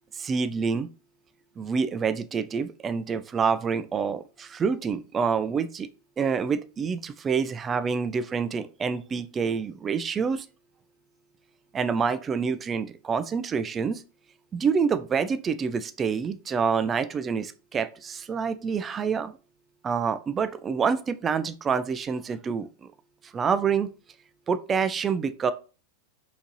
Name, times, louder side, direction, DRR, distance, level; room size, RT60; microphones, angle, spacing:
voice 1, 0.1-0.9 1.6-5.9 6.2-10.5 11.7-14.0 14.5-19.4 19.8-22.9 23.2-23.9 24.5-25.5, right 6 dB, 20° right, 12 dB, 0.3 m, -27 dB
4.4 x 2.7 x 3.0 m, 0.35 s
figure-of-eight pair, 90°, 0 cm